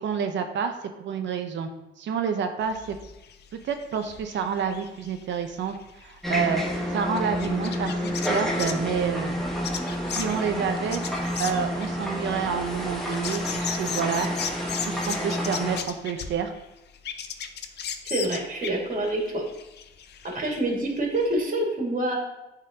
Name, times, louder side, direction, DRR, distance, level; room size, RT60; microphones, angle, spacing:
voice 1, 0.0-0.7 1.0-1.7 2.0-3.0 3.5-5.8 6.0-6.6 6.9-9.3 10.2-11.0 11.4-14.3 14.8-16.5, right 7 dB, 65° right, 6 dB, 0.7 m, -29 dB
sound 1, 2.6-8.9 9.4-16.6 16.9-20.6 20.9-21.0 21.2-21.3, left 8 dB, 60° left, 0.6 m, -37 dB
sound 2, 6.2-15.8, equal, ahead, 1.2 m, -29 dB
voice 2, 18.0-19.4 20.2-22.2, right 1 dB, 45° right, -1 dB, 2.1 m, -27 dB
9.3 x 3.8 x 2.9 m, 0.95 s
cardioid pair, 90°, 20 cm